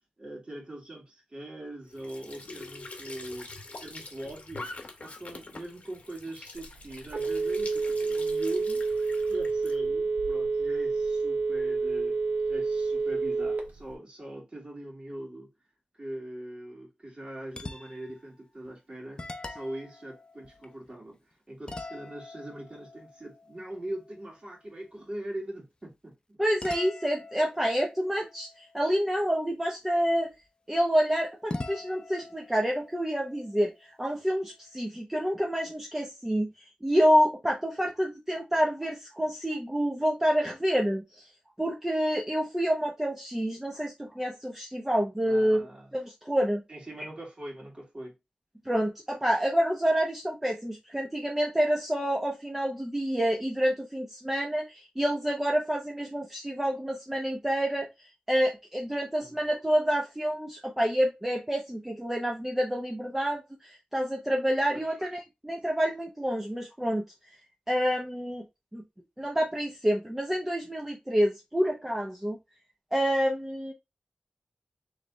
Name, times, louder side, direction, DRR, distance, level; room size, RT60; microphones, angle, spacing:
voice 1, 0.2-3.5 3.8-4.7 5.0-8.8 9.3-12.1 12.5-15.5 15.9-21.2 21.5-26.4 45.2-45.9 46.7-48.1 59.2-59.4 64.7-64.8, right 1 dB, 35° right, 2.3 m, -41 dB
Squeak / Sink (filling or washing) / Trickle dribble, 1.9-9.8, left 3 dB, 55° left, 1.0 m, -45 dB
Telephone, 6.6-13.9, right 4 dB, 80° right, 1.0 m, -29 dB
sound 1, 17.5-18.2 18.7-18.8 19.2-21.1 21.7-24.3 26.6-29.3 31.5-34.1, left 2 dB, 30° left, 0.6 m, -43 dB
voice 2, 26.4-30.3 30.7-36.5 36.8-41.0 41.6-45.7 45.9-46.6 47.0-47.1 48.7-57.9 58.3-67.0 67.7-68.4 68.7-68.8 69.2-72.4 72.9-73.7, equal, 10° right, 0.8 m, -28 dB
3.3 x 3.3 x 3.9 m
wide cardioid pair, 95°, 3 cm